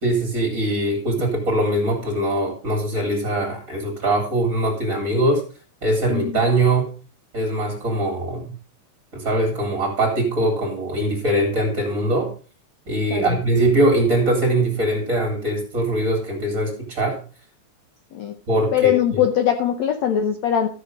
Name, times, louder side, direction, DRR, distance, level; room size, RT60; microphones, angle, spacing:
voice 1, 0.0-5.4 5.8-6.9 7.3-8.5 9.1-12.3 12.9-17.2 18.5-19.2, right 1 dB, 25° right, 0 dB, 2.1 m, -22 dB
voice 2, 6.1-6.4 13.1-13.4 18.1-18.4 18.7-20.7, left 10 dB, 80° left, 6 dB, 1.6 m, -21 dB
13.5 x 6.6 x 5.2 m, 0.38 s
omnidirectional pair, 4.3 m